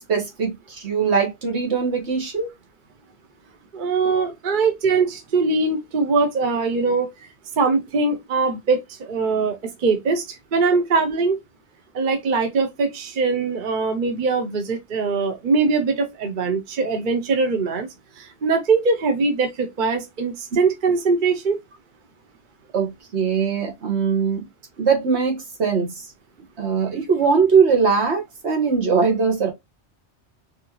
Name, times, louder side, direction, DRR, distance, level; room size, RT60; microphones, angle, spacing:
voice 1, 0.1-2.5 22.7-24.4 24.8-26.0 26.6-29.5, right 5 dB, 75° right, 1.6 m, -21 dB
voice 2, 3.7-11.4 11.9-17.9 18.2-21.6, right 4 dB, 50° right, 0.9 m, -22 dB
4.6 x 2.8 x 3.0 m
omnidirectional pair, 1.1 m